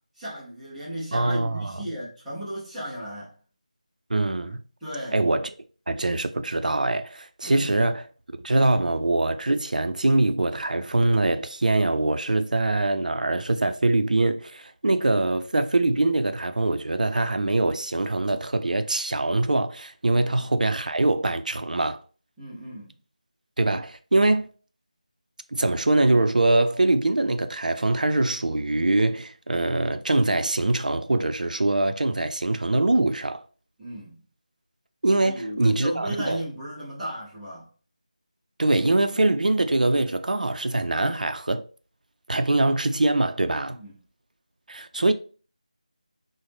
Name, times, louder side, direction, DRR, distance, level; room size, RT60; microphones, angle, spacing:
voice 1, 0.2-3.3 4.8-5.2 7.4-7.8 22.4-22.9 33.8-34.2 35.2-37.7 43.7-43.9, equal, ahead, 0.3 m, -35 dB
voice 2, 1.1-1.9 4.1-4.6 5.1-5.5 5.9-8.1 8.4-22.0 23.6-24.5 25.5-33.4 35.0-36.4 38.6-41.6 42.3-43.8 44.7-45.1, right 2 dB, 85° right, 0.4 m, -23 dB
3.8 x 2.1 x 3.2 m
figure-of-eight pair, 175°, 4 cm